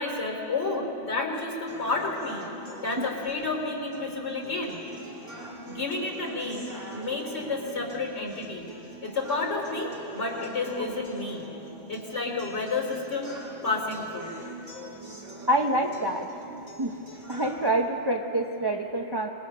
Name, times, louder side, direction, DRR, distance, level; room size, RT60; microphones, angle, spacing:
voice 1, 0.0-2.4 2.8-4.8 5.7-8.7 9.0-11.4 11.9-13.4 13.6-14.3, left 3 dB, 65° left, 1 dB, 3.5 m, -30 dB
sound 1, 1.7-17.7, right 1 dB, 80° right, 3.7 m, -43 dB
voice 2, 15.5-16.3 16.8-16.9 17.3-19.3, right 1 dB, 20° right, 1 dB, 0.8 m, -26 dB
27.0 x 20.5 x 5.5 m, 2.9 s
omnidirectional pair, 1.2 m